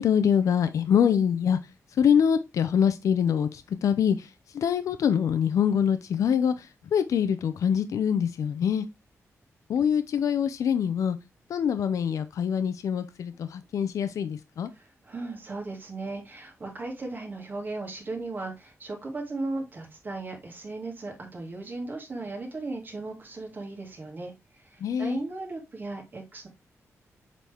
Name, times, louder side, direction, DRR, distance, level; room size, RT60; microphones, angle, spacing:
voice 1, 0.0-1.6 2.0-4.3 4.5-6.7 6.9-8.9 9.7-11.2 11.5-14.7 24.8-25.2, left 8 dB, 80° left, 0.6 m, -24 dB
voice 2, 14.7-24.3 24.6-26.5, right 2 dB, 35° right, 2.3 m, -36 dB
7.4 x 4.0 x 3.5 m
wide cardioid pair, 145°, 5 cm